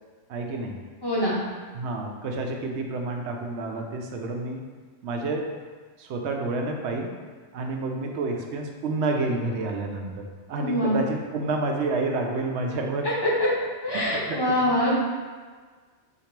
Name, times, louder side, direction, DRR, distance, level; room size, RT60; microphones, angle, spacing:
voice 1, 0.3-0.7 1.7-4.6 5.0-5.5 6.0-7.1 7.5-13.1 13.9-14.7, right 3 dB, 75° right, 2 dB, 0.8 m, -29 dB
voice 2, 1.0-1.4 10.6-11.0 13.0-13.5 13.8-15.0, equal, 25° left, -6 dB, 0.6 m, -24 dB
2.9 x 2.9 x 4.4 m, 1.5 s
omnidirectional pair, 1.2 m